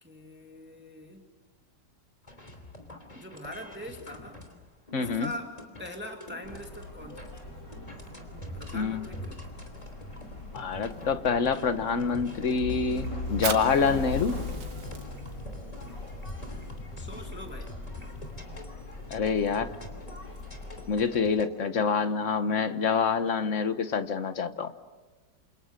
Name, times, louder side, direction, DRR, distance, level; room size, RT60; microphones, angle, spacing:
voice 1, 0.0-1.3 3.1-4.4 4.9-7.2 8.5-9.5 17.0-17.7, left 1 dB, 5° right, 3 dB, 2.2 m, -42 dB
sound 1, 2.2-21.5, left 1 dB, 20° left, 3.2 m, -45 dB
voice 2, 4.9-5.3 8.7-9.0 10.5-14.3 19.1-19.7 20.9-24.7, left 5 dB, 45° left, 10 dB, 1.3 m, -26 dB
sound 2, 6.4-20.9, left 2 dB, 70° left, 5.4 m, -40 dB
Fire, 13.3-20.5, right 5 dB, 75° right, 2.6 m, -42 dB
28.5 x 28.5 x 6.7 m, 1.2 s
omnidirectional pair, 2.0 m